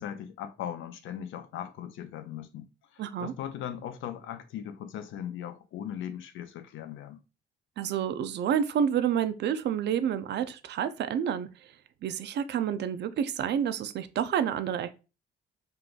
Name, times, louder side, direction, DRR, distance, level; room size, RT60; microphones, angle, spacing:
voice 1, 0.0-7.2, left 10 dB, 80° left, 0.5 m, -39 dB
voice 2, 3.0-3.3 7.8-11.5 12.0-14.9, right 8 dB, 60° right, 0.4 m, -29 dB
3.6 x 2.3 x 2.4 m
cardioid pair, 90°, 20 cm